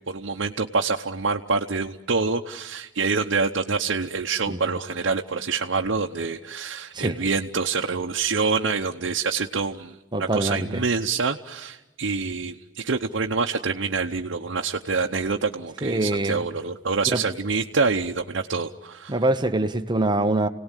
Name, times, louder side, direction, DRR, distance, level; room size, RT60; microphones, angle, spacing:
voice 1, 0.1-19.1, right 4 dB, 75° right, 2 dB, 0.8 m, -26 dB
voice 2, 10.1-10.8 15.8-16.4 17.1-17.2 19.1-20.5, right 2 dB, 25° right, 7 dB, 0.9 m, -24 dB
29.5 x 18.0 x 9.0 m, 1.1 s
head